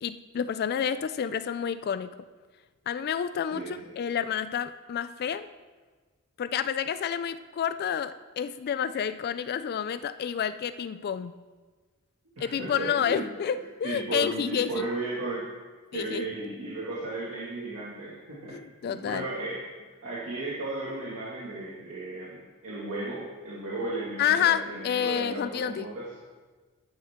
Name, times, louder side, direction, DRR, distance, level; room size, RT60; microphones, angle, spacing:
voice 1, 0.0-2.2 2.9-5.5 6.4-11.3 12.4-14.9 15.9-16.3 18.5-19.3 24.2-25.9, left 8 dB, 45° left, 13 dB, 0.3 m, -29 dB
voice 2, 12.4-13.3 13.8-15.5 15.9-18.6 18.9-19.6 20.0-26.1, right 2 dB, 75° right, -6 dB, 2.0 m, -35 dB
11.5 x 9.2 x 3.6 m, 1.4 s
head